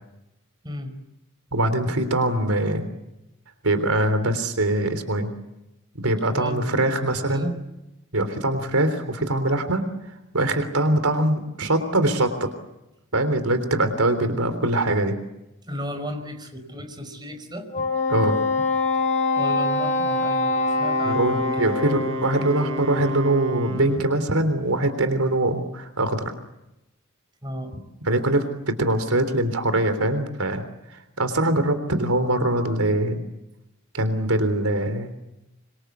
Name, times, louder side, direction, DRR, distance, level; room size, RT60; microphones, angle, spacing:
voice 1, 0.6-0.9 6.3-7.6 15.6-17.7 18.9-19.0 19.4-21.7 27.4-27.7, equal, 20° right, 7 dB, 4.9 m, -34 dB
voice 2, 1.5-2.9 3.6-5.3 6.0-7.5 8.1-9.9 10.3-12.5 13.1-15.2 18.1-18.4 21.1-26.3 28.1-30.6 30.9-33.2 33.9-35.2, right 1 dB, 80° right, 9 dB, 3.6 m, -23 dB
Wind instrument woodwind instrument, 17.7-22.3, left 3 dB, 30° left, 6.4 m, -24 dB
Wind instrument woodwind instrument 2, 20.4-24.2, equal, 60° right, 5.9 m, -32 dB
26.0 x 24.5 x 8.3 m, 0.92 s
head